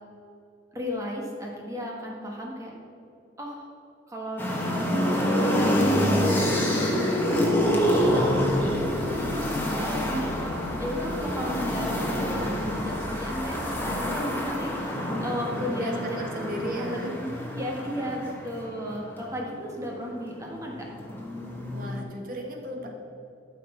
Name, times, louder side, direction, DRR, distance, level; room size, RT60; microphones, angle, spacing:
voice 1, 0.7-2.7 3.4-3.7 4.1-6.1 7.3-8.2 9.1-10.3 10.8-16.5 16.8-20.9, equal, 15° right, -2 dB, 1.4 m, -34 dB
sound 1, 4.4-19.2 20.3-22.0, equal, 10° left, 1.4 m, -27 dB
sound 2, 6.9-14.2, equal, 70° right, 2.2 m, -42 dB
voice 2, 15.5-17.1 21.7-22.9, equal, 50° right, 1 dB, 1.4 m, -35 dB
13.0 x 5.9 x 4.4 m, 2.8 s
head